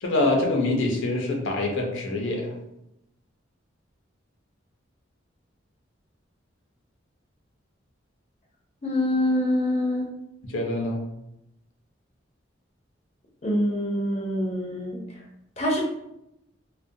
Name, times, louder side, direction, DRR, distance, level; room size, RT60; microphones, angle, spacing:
voice 1, 0.0-2.5 10.4-11.0, left 2 dB, 85° left, 1 dB, 0.6 m, -25 dB
voice 2, 8.8-10.1 13.4-15.0 15.6-15.8, left 1 dB, 35° left, -1 dB, 0.5 m, -25 dB
2.4 x 2.1 x 2.6 m, 0.84 s
head